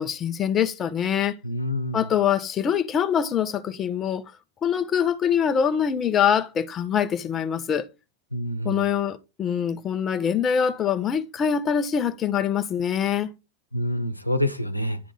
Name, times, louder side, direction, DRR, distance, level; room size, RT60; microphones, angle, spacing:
voice 1, 0.0-1.4 1.9-4.2 4.6-7.9 8.6-13.3, left 8 dB, 25° left, 0.9 m, -24 dB
voice 2, 1.4-2.1 8.3-8.8 13.7-15.0, left 1 dB, 90° left, 1.0 m, -27 dB
10.5 x 3.7 x 5.5 m
figure-of-eight pair, 90°, 0 cm